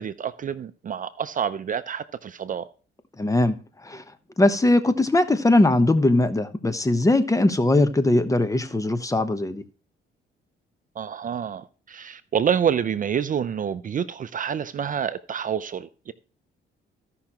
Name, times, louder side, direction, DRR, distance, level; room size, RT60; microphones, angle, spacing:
voice 1, 0.0-2.7 11.0-16.1, right 8 dB, 45° right, 0.5 m, -28 dB
voice 2, 3.2-4.0 4.4-9.6, left 2 dB, 15° left, 1.0 m, -20 dB
15.5 x 5.8 x 3.0 m
cardioid pair, 90°, 20 cm